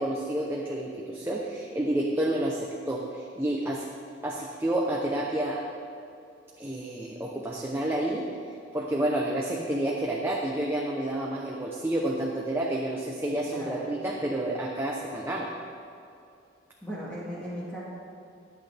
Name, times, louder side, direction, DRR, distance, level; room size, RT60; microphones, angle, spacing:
voice 1, 0.0-3.9 4.2-5.6 6.6-8.2 8.7-15.5, right 1 dB, 15° right, -3 dB, 0.9 m, -29 dB
voice 2, 13.5-14.0 16.8-17.8, equal, 5° left, -8 dB, 2.0 m, -37 dB
23.5 x 8.0 x 3.5 m, 2.6 s
head